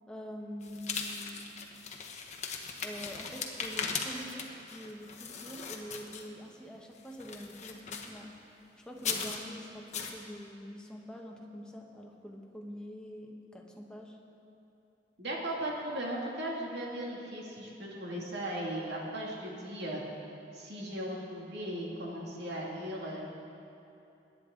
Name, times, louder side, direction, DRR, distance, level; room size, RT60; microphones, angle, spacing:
voice 1, 0.1-1.5 2.8-8.3 8.8-14.2, equal, 5° left, 0 dB, 1.1 m, -45 dB
sound 1, 0.6-6.5 7.0-8.2 8.9-9.4 9.9-10.2, left 5 dB, 40° left, 1.0 m, -38 dB
voice 2, 15.2-20.0 20.5-23.2, right 1 dB, 65° right, -3 dB, 2.5 m, -37 dB
22.0 x 9.9 x 3.8 m, 2.8 s
head